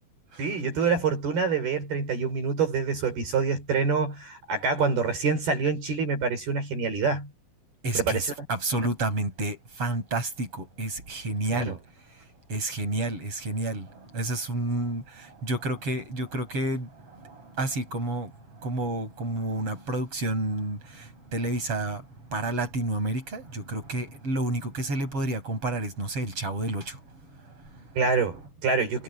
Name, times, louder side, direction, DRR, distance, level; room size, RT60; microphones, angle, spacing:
voice 1, 0.4-7.3 8.0-8.3 11.5-11.8 28.0-29.0, right 5 dB, 55° right, 7.1 m, -26 dB
voice 2, 7.8-11.8 12.1-27.9, right 2 dB, 30° right, 6.9 m, -30 dB
omnidirectional pair, 5.3 m